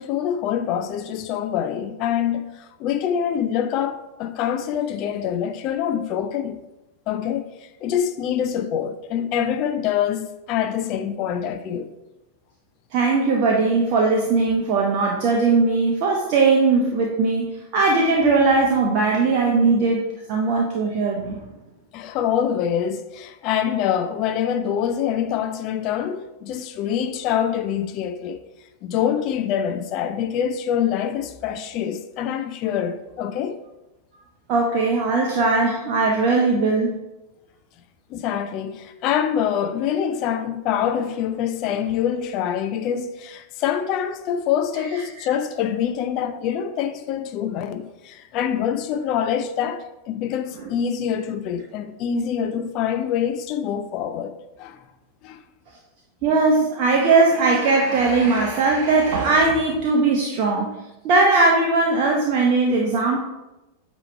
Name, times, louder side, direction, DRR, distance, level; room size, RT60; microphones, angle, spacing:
voice 1, 0.0-6.6 7.1-11.9 21.9-28.4 28.8-33.6 38.1-54.3 54.6-54.8 55.2-55.4, left 9 dB, 40° left, 0.5 m, -25 dB
voice 2, 12.9-20.0 20.3-21.4 34.5-37.0 45.2-45.3 56.2-60.8 61.0-63.2, right 3 dB, 45° right, 0.9 m, -19 dB
8.7 x 3.1 x 4.5 m
figure-of-eight pair, 90°, 0 cm